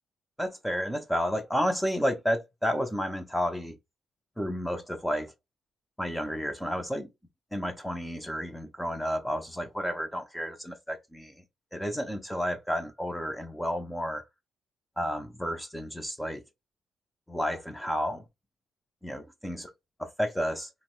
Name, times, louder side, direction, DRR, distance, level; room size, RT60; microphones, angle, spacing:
voice 1, 0.4-3.8 4.4-5.3 6.0-7.1 7.5-11.4 11.7-14.2 15.0-16.4 17.3-18.2 19.0-19.7 20.0-20.7, equal, 5° left, 0.4 m, -31 dB
3.0 x 2.0 x 2.9 m
cardioid pair, 90°, 0 cm